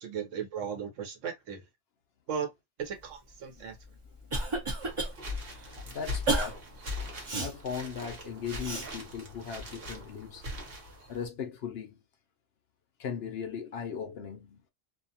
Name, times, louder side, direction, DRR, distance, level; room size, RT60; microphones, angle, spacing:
voice 1, 0.0-1.6 2.3-2.5 2.8-3.8, right 7 dB, 80° right, 1.1 m, -36 dB
Cough, 3.7-5.1 5.5-5.7 6.3-6.5 7.3-7.5 8.6-8.9, right 2 dB, 30° right, 0.7 m, -31 dB
sound 1, 4.8-11.3, left 2 dB, 55° right, 1.1 m, -41 dB
voice 2, 5.9-6.6 7.3-10.4 11.1-12.0 13.0-14.6, left 7 dB, 60° left, 0.7 m, -38 dB
2.6 x 2.2 x 2.7 m
omnidirectional pair, 1.3 m